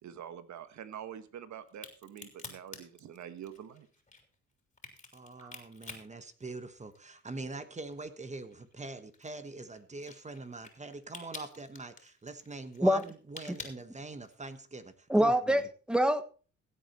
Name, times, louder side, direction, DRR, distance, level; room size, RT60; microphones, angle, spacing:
voice 1, 0.0-3.9 5.4-5.5, right 9 dB, 65° right, 11 dB, 1.4 m, -46 dB
Crack, 1.7-7.2 7.5-14.5, left 3 dB, 25° left, 3.4 m, -49 dB
voice 2, 5.1-15.6, right 3 dB, 25° right, 11 dB, 1.3 m, -44 dB
voice 3, 15.1-16.2, equal, 5° right, 12 dB, 1.2 m, -25 dB
16.0 x 8.1 x 4.3 m, 0.38 s
cardioid pair, 90°, 30 cm